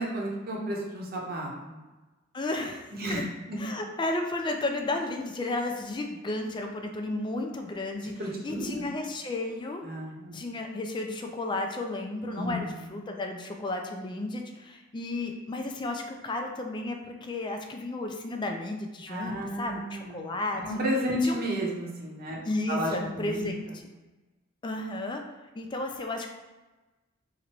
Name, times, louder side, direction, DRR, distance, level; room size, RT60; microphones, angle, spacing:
voice 1, 0.0-1.8 2.9-3.6 8.0-8.9 9.8-10.4 12.4-12.8 19.1-22.4 22.7-23.5, equal, 45° right, -2 dB, 0.8 m, -32 dB
voice 2, 2.3-3.2 3.6-8.1 8.4-9.8 10.3-20.6 21.2-21.4 22.4-23.7 24.6-25.2 25.5-26.3, left 2 dB, 25° left, 3 dB, 0.4 m, -33 dB
3.0 x 2.6 x 4.4 m, 1.2 s
head